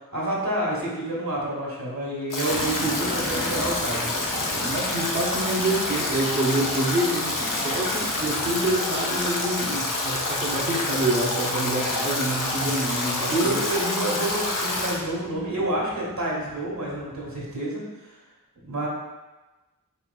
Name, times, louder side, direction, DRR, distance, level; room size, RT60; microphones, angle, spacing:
voice 1, 0.1-4.1 12.5-12.9 13.3-18.1 18.6-18.9, right 1 dB, 75° right, -3 dB, 1.2 m, -28 dB
Stream / Drip / Trickle dribble, 2.3-15.0, left 2 dB, 65° left, 0.7 m, -27 dB
sound 1, 2.5-17.5, left 1 dB, 15° left, 0.5 m, -41 dB
voice 2, 4.6-13.6, right 1 dB, 30° right, -4 dB, 0.6 m, -27 dB
4.3 x 3.0 x 2.2 m, 1.1 s
wide cardioid pair, 40°, 35 cm